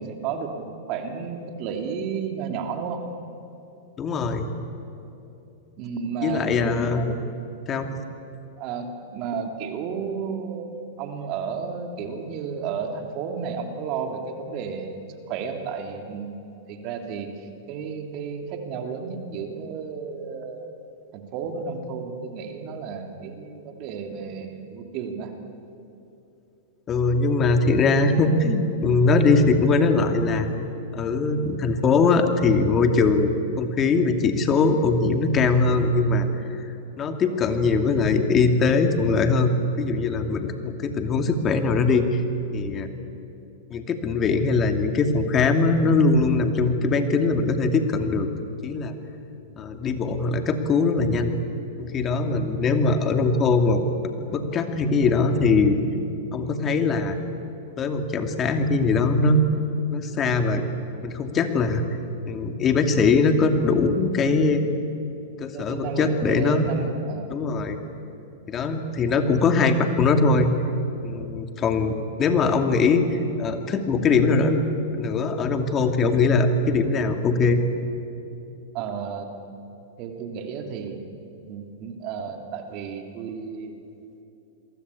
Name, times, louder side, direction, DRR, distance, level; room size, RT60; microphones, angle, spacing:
voice 1, 0.0-3.0 5.8-6.5 8.6-10.7 11.0-16.3 16.7-20.7 21.1-25.3 65.5-67.3 78.7-79.3 80.0-81.0 81.4-83.7, right 6 dB, 45° right, 4 dB, 3.1 m, -32 dB
voice 2, 4.0-4.5 6.2-7.1 7.7-7.9 26.9-30.5 30.9-36.3 37.0-42.2 42.5-42.9 43.7-48.9 49.6-51.3 51.8-57.2 57.8-59.4 59.9-60.6 61.0-61.8 62.3-64.6 65.4-66.7 67.3-67.8 68.5-70.5 71.0-74.6 74.9-77.6, left 3 dB, 30° left, 6 dB, 2.6 m, -21 dB
28.0 x 23.0 x 8.5 m, 2.9 s
hypercardioid pair, 115°, 0 cm